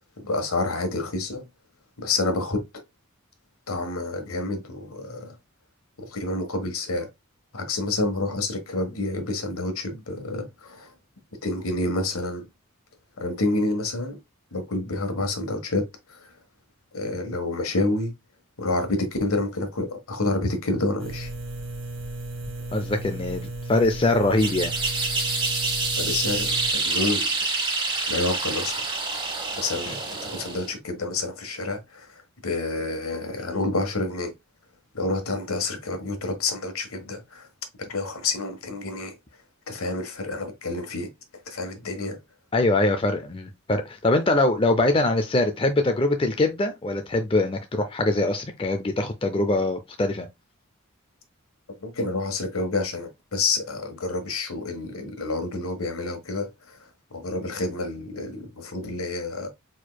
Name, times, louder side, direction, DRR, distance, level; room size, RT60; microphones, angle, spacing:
voice 1, 0.2-1.5 2.0-2.6 3.7-5.4 6.0-7.1 7.5-10.9 11.4-12.5 13.2-14.2 14.5-15.8 16.1-16.4 16.9-18.1 18.6-21.3 26.0-27.3 28.1-28.8 29.5-29.9 30.3-34.3 34.9-37.5 37.8-39.2 39.7-41.1 41.4-42.2 51.8-59.5, left 2 dB, 85° left, 1.3 m, -28 dB
sound 1, 21.0-26.7, right 2 dB, 60° right, 1.3 m, -35 dB
voice 2, 22.7-24.7 29.9-30.0 42.5-50.3, left 2 dB, 25° left, 0.5 m, -23 dB
sound 2, 24.4-30.7, right 3 dB, 20° right, 1.1 m, -27 dB
4.5 x 4.4 x 2.2 m
head